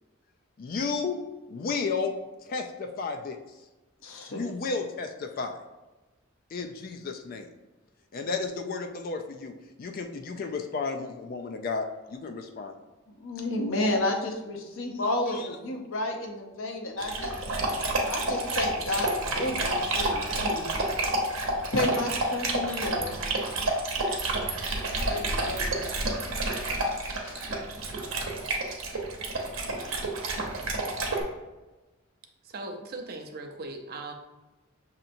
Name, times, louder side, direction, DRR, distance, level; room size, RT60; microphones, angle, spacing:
voice 1, 0.6-1.2 1.5-2.1 2.4-3.4 4.3-5.6 6.5-7.5 8.1-12.7 15.3-15.5, left 4 dB, 45° left, 5 dB, 0.3 m, -33 dB
voice 2, 4.0-4.4 13.2-17.3 18.1-20.7 21.3-23.2 25.0-25.8 26.3-27.4, left 1 dB, 70° left, 2 dB, 0.7 m, -32 dB
Dog, 17.0-31.2, right 2 dB, 85° right, 0.9 m, -29 dB
voice 3, 32.5-34.1, right 2 dB, 45° right, 3 dB, 0.5 m, -38 dB
6.5 x 2.8 x 2.6 m, 1.1 s
head